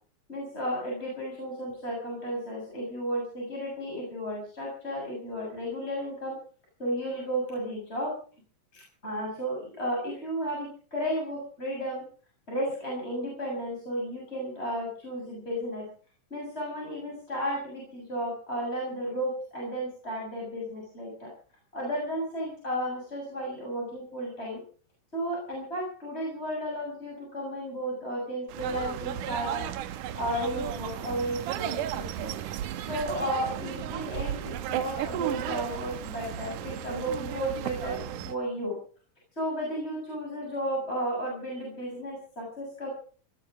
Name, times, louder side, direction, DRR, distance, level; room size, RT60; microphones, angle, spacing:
voice 1, 0.3-6.3 6.8-8.1 8.7-12.0 12.5-15.8 16.3-21.3 21.7-24.6 25.1-29.6 29.9-32.3 32.8-38.8 39.3-42.9, equal, 15° left, -3 dB, 7.2 m, -33 dB
sound 1, 28.5-38.3, right 11 dB, 75° right, 2.4 m, -34 dB
19.0 x 13.5 x 5.2 m, 0.42 s
omnidirectional pair, 3.8 m